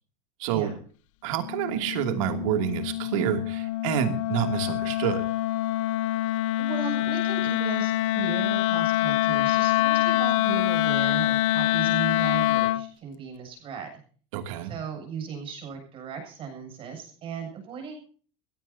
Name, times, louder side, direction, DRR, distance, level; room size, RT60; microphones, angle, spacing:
voice 1, 0.4-0.7 1.2-5.3 14.3-14.7, right 11 dB, 80° right, 5 dB, 2.7 m, -28 dB
Wind instrument woodwind instrument, 1.4-12.9, left 15 dB, 80° left, 0.8 m, -25 dB
voice 2, 6.6-14.0 14.7-17.9, right 6 dB, 35° right, 3 dB, 7.8 m, -36 dB
21.5 x 17.0 x 2.8 m, 0.43 s
cardioid pair, 160°, 17 cm